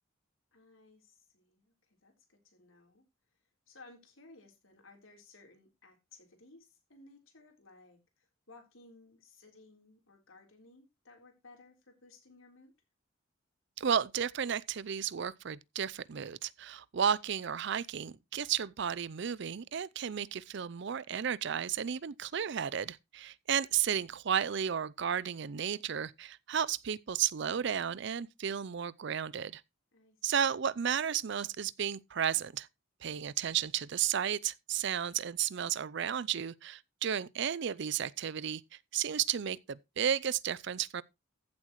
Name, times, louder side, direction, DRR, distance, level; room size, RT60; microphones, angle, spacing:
voice 1, 0.5-3.0 3.7-12.7 29.9-30.3, left 3 dB, 80° left, 3.7 m, -58 dB
voice 2, 13.8-29.6 30.2-32.7 33.0-38.6 38.9-41.0, right 8 dB, 60° right, 0.5 m, -33 dB
15.0 x 7.4 x 3.1 m
head